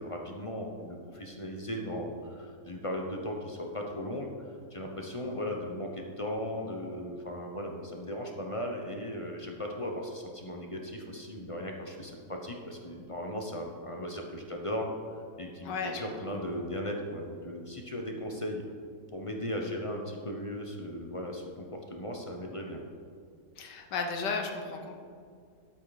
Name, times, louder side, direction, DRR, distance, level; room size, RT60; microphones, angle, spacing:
voice 1, 0.0-4.3 4.7-18.6 19.1-22.8, left 1 dB, 25° left, 1 dB, 0.8 m, -37 dB
voice 2, 15.6-16.0 23.6-25.0, left 4 dB, 85° left, 3 dB, 1.6 m, -34 dB
12.0 x 8.2 x 4.1 m, 2.3 s
omnidirectional pair, 1.8 m